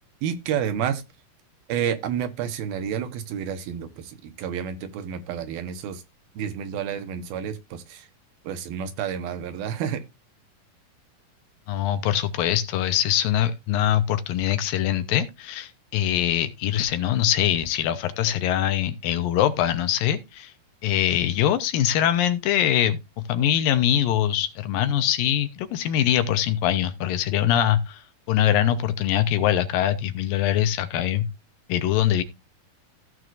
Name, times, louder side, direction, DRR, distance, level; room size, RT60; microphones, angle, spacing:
voice 1, 0.2-1.0 1.7-6.0 6.4-8.1 8.4-10.1, right 8 dB, 80° right, 3.0 m, -30 dB
voice 2, 11.7-20.5 20.8-28.0 28.3-31.3 31.7-32.2, left 11 dB, 75° left, 2.5 m, -23 dB
16.0 x 6.3 x 2.5 m
omnidirectional pair, 4.3 m